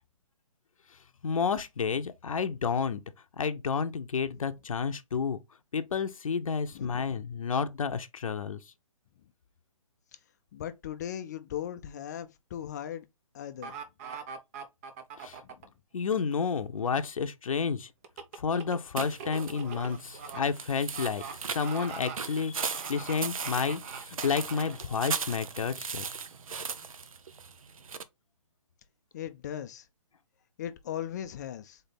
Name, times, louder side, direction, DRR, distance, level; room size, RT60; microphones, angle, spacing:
voice 1, 1.2-3.0 3.4-5.4 5.7-8.6 15.2-15.4 15.9-17.9 18.4-26.0, left 6 dB, 75° left, 0.7 m, -30 dB
voice 2, 6.7-7.3 10.5-13.1 13.3-13.7 15.4-15.7 29.1-29.9 30.6-31.8, left 10 dB, 30° left, 0.4 m, -38 dB
sound 1, 13.6-15.7 18.0-20.4 20.9-21.3 21.6-22.2 22.6-24.8 25.3-25.4, right 6 dB, 25° right, 0.7 m, -42 dB
sound 2, 19.0-28.0, right 5 dB, 75° right, 0.7 m, -38 dB
4.0 x 3.4 x 3.9 m
hypercardioid pair, 150°, 18 cm